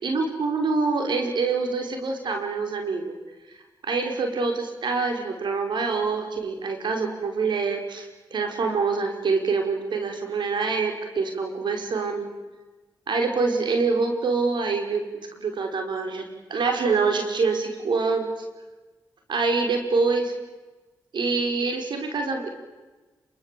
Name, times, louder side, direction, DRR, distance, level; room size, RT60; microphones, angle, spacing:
voice 1, 0.0-3.1 3.8-12.3 13.1-18.3 19.3-20.3 21.1-22.5, right 4 dB, 75° right, 4 dB, 5.4 m, -25 dB
27.0 x 24.5 x 8.6 m, 1.2 s
cardioid pair, 50°, 8 cm